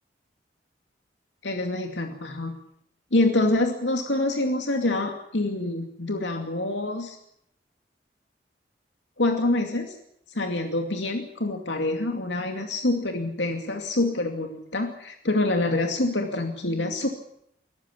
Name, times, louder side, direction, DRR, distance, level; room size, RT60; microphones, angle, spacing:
voice 1, 1.4-2.5 3.1-7.2 9.2-10.0 10.3-17.1, left 2 dB, 85° left, 4 dB, 2.5 m, -26 dB
22.5 x 14.5 x 9.9 m, 0.75 s
head